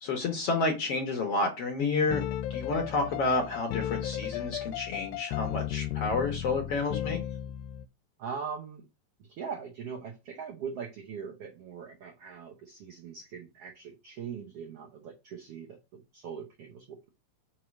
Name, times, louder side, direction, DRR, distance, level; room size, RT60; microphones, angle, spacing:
voice 1, 0.0-2.2 2.5-7.2, left 3 dB, 60° left, 3 dB, 1.6 m, -30 dB
sound 1, 1.8-7.9, left 12 dB, 80° left, 2.2 m, -34 dB
voice 2, 8.2-8.8 9.3-17.1, right 6 dB, 85° right, 2 dB, 1.3 m, -41 dB
5.5 x 4.6 x 6.3 m, 0.27 s
omnidirectional pair, 4.2 m